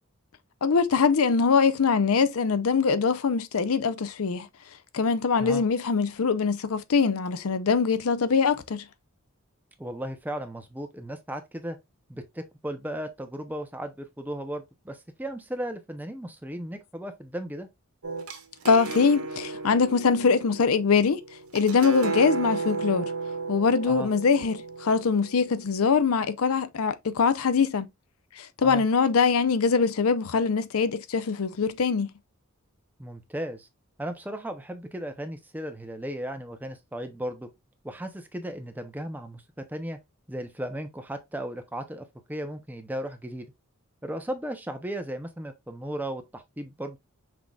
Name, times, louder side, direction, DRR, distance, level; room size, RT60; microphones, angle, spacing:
voice 1, 0.6-4.5 4.9-8.9 18.6-21.2 21.5-23.1 23.5-27.9 28.4-32.1, left 5 dB, 75° left, 0.5 m, -23 dB
voice 2, 9.8-11.8 12.1-17.7 23.8-24.1 28.6-28.8 33.0-33.7 34.0-37.5 37.8-40.0 40.3-43.5 44.0-47.0, right 1 dB, 10° right, 0.6 m, -36 dB
sound 1, 18.0-25.8, right 4 dB, 80° right, 1.1 m, -34 dB
5.9 x 3.7 x 2.4 m
head